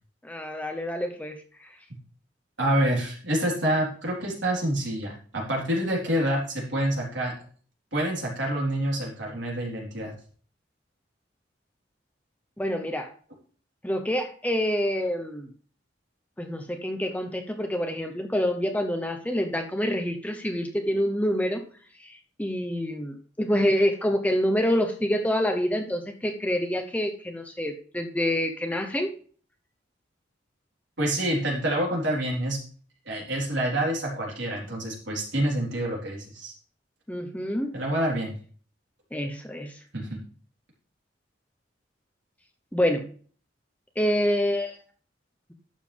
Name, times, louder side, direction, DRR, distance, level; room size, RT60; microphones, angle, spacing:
voice 1, 0.2-1.4 12.6-13.1 13.8-15.5 16.4-21.6 22.0-22.1 22.4-29.1 37.1-37.7 39.1-39.7 42.7-43.1 44.0-44.8, equal, 10° left, 4 dB, 0.8 m, -27 dB
voice 2, 2.6-7.3 7.9-10.2 31.0-32.6 33.1-36.5 37.7-38.3 39.9-40.2, right 1 dB, 75° right, -2 dB, 3.9 m, -27 dB
11.5 x 7.4 x 3.4 m, 0.43 s
head